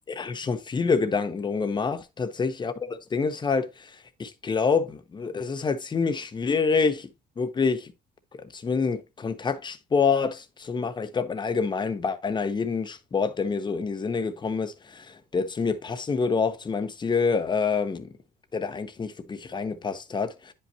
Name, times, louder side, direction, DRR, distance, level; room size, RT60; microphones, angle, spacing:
voice 1, 0.2-7.1 7.4-7.9 8.3-18.1 18.5-20.5, left 5 dB, 25° left, 1.0 m, -27 dB
9.6 x 5.5 x 2.9 m
cardioid pair, 110°, 17 cm